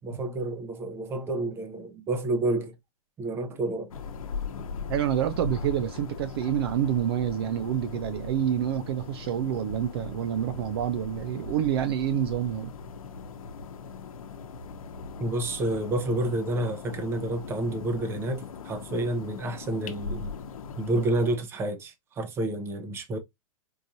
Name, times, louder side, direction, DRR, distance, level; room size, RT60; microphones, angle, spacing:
voice 1, 0.0-2.7 3.2-3.9 15.2-20.3 20.8-23.2, right 2 dB, 15° right, 0.7 m, -29 dB
sound 1, 3.9-21.4, left 5 dB, 80° left, 0.9 m, -39 dB
voice 2, 4.9-12.7, right 10 dB, 45° right, 0.4 m, -28 dB
4.7 x 2.5 x 2.6 m
hypercardioid pair, 155°, 17 cm